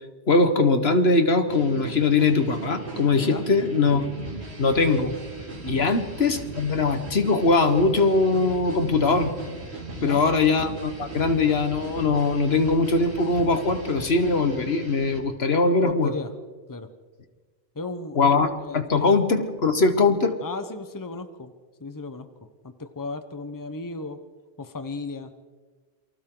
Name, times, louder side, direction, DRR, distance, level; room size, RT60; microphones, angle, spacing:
voice 1, 0.3-4.1 4.6-5.1 5.7-9.3 10.0-16.1 18.1-18.5 18.7-20.3, left 3 dB, 70° left, 8 dB, 1.7 m, -21 dB
sound 1, 1.5-15.2, right 2 dB, 90° right, 2.9 m, -37 dB
voice 2, 5.6-5.9 10.0-10.2 15.8-16.3 16.7-16.9 17.7-19.1 20.4-21.5 21.8-22.3 22.6-24.2 24.6-25.3, left 3 dB, 20° left, 9 dB, 1.0 m, -35 dB
28.5 x 24.0 x 3.9 m, 1.4 s
omnidirectional pair, 1.1 m